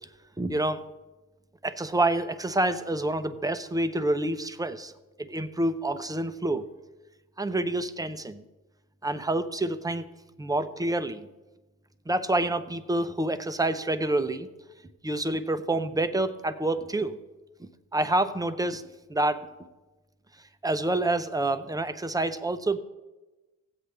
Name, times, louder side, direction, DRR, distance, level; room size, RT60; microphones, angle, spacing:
voice 1, 0.4-0.8 1.6-4.9 5.2-6.7 7.4-8.4 9.0-10.1 10.4-11.3 12.1-14.5 15.0-17.2 17.6-18.8 19.1-19.5 20.6-22.8, right 2 dB, 10° right, 10 dB, 0.7 m, -27 dB
16.5 x 7.9 x 3.4 m, 1.1 s
cardioid pair, 80°, 31 cm